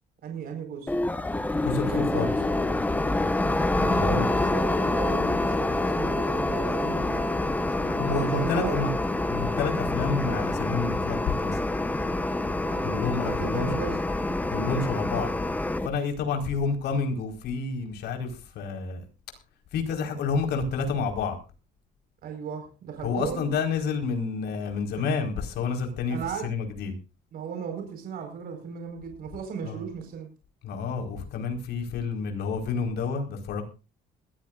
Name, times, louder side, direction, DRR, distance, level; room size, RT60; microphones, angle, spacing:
voice 1, 0.2-0.9 1.7-2.5 3.8-8.9 12.6-14.0 22.2-23.5 24.5-24.6 25.0-25.1 26.1-26.5 27.3-30.3, right 7 dB, 60° right, 4 dB, 4.9 m, -36 dB
sound 1, 0.9-15.9, left 2 dB, 10° left, 1.2 m, -27 dB
voice 2, 1.6-2.3 3.8-4.2 8.0-8.9 9.3-11.6 12.8-13.7 14.5-15.3 15.8-19.0 19.7-21.4 23.0-26.9 29.6-29.8 30.6-33.6, left 5 dB, 70° left, 4 dB, 4.6 m, -29 dB
21.0 x 14.5 x 2.5 m, 0.32 s
cardioid pair, 125°, 17 cm